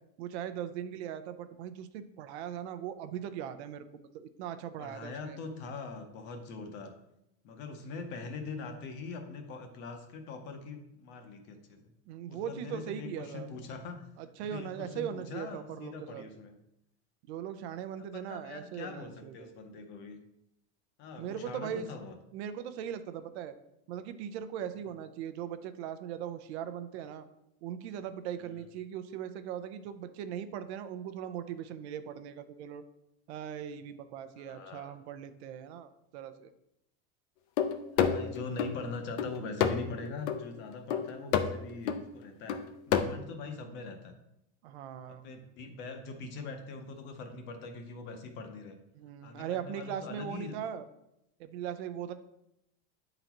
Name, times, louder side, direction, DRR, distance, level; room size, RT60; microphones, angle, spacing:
voice 1, 0.2-3.9 4.1-5.4 12.1-13.5 14.2-16.2 17.2-19.5 21.2-21.9 22.3-23.6 23.9-27.2 27.6-32.8 33.3-36.5 44.6-45.3 48.9-50.9 51.4-52.1, right 9 dB, 70° right, 11 dB, 0.6 m, -39 dB
voice 2, 4.8-6.9 7.4-11.9 12.3-14.0 14.5-16.6 18.0-20.2 21.0-22.1 28.5-28.6 34.4-34.9 37.9-44.1 45.1-48.8 49.2-50.6, left 4 dB, 35° left, 6 dB, 0.7 m, -42 dB
sound 1, 37.6-38.7 39.2-39.9 40.3-40.5 40.9-41.6 41.9-42.0 42.5-43.0, left 8 dB, 80° left, 0.7 m, -29 dB
9.1 x 3.9 x 2.9 m, 0.83 s
supercardioid pair, 170°, 34 cm